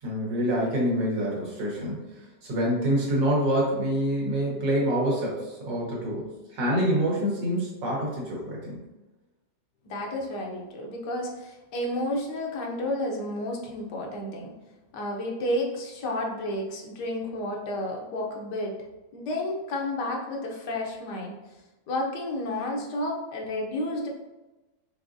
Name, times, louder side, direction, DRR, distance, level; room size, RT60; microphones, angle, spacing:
voice 1, 0.0-2.0 2.4-8.8, equal, 70° right, -3 dB, 1.9 m, -26 dB
voice 2, 9.9-14.5 14.9-18.8 19.1-21.4 21.9-24.1, left 1 dB, 70° left, 0 dB, 1.3 m, -31 dB
4.7 x 3.6 x 2.6 m, 1.1 s
omnidirectional pair, 1.9 m